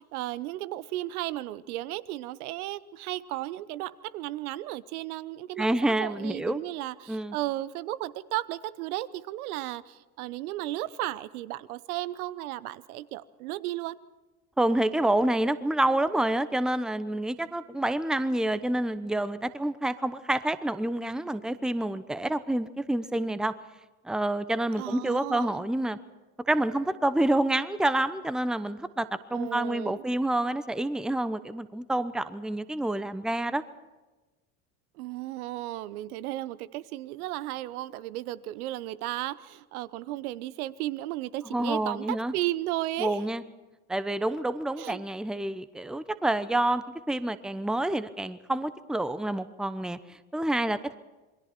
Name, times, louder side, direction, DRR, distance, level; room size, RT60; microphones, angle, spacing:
voice 1, 0.0-14.0 24.8-25.6 29.3-30.0 35.0-43.2 44.8-45.0, right 15 dB, 75° right, 17 dB, 0.9 m, -34 dB
voice 2, 5.6-6.6 7.1-7.4 14.6-23.5 24.0-26.0 26.4-33.6 41.5-42.3 43.0-43.4 43.9-51.0, right 1 dB, ahead, 13 dB, 0.9 m, -28 dB
28.0 x 22.0 x 4.5 m, 1.2 s
hypercardioid pair, 70°, 44 cm